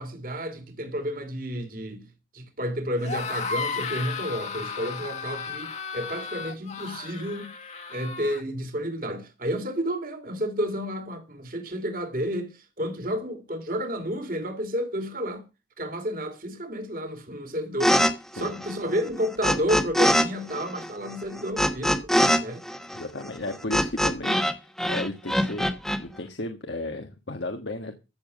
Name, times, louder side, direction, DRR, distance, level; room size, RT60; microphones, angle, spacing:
voice 1, 0.0-2.1 2.3-7.5 7.9-15.4 15.8-22.1 22.4-22.6 23.4-23.5, equal, 50° right, 2.6 m, -31 dB
sound 1, 3.0-8.4, left 5 dB, 35° left, 1.7 m, -34 dB
sound 2, 17.8-18.1 18.4-20.3 20.5-24.5 24.8-26.0, equal, ahead, 1.2 m, -23 dB
voice 2, 22.9-25.7 26.0-28.0, left 2 dB, 70° left, 1.5 m, -34 dB
15.0 x 7.1 x 6.5 m
head